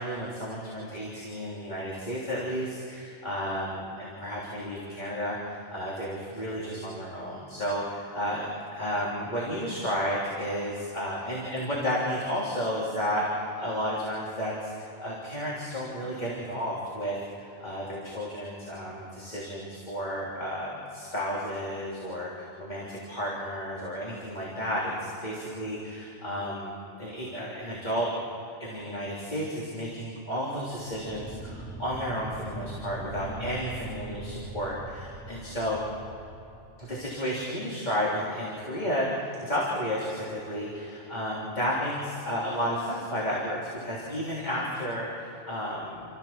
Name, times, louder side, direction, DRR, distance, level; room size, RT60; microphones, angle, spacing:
voice 1, 0.0-28.1 28.6-35.8 36.8-46.1, equal, 40° left, -6 dB, 3.6 m, -32 dB
sound 1, 30.7-37.2, right 2 dB, 10° left, 3.3 m, -41 dB
29.5 x 14.5 x 7.5 m, 2.8 s
omnidirectional pair, 1.2 m